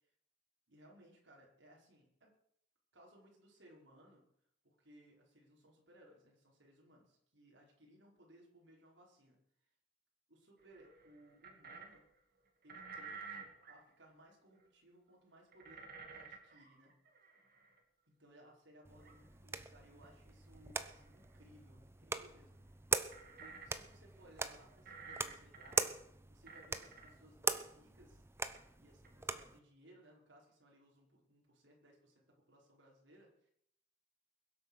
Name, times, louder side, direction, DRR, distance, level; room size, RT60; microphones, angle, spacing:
voice 1, 0.7-2.3 2.9-4.3 4.6-9.4 10.3-12.0 12.6-16.9 18.1-22.6 23.2-26.0 26.3-33.5, right 1 dB, 70° right, -2 dB, 5.2 m, -63 dB
sound 1, 10.6-12.0 12.6-13.7 14.6-14.7 15.5-17.8 18.9-19.1 20.0-20.1 20.9-21.2 23.1-24.0 24.3-24.4 24.9-25.9 26.5-27.1 28.6-28.7 29.0-29.1 29.4-29.5, right 5 dB, 55° right, 2.6 m, -52 dB
sound 2, 18.8-29.6, right 3 dB, 15° right, 0.8 m, -42 dB
22.0 x 8.2 x 6.4 m, 0.70 s
head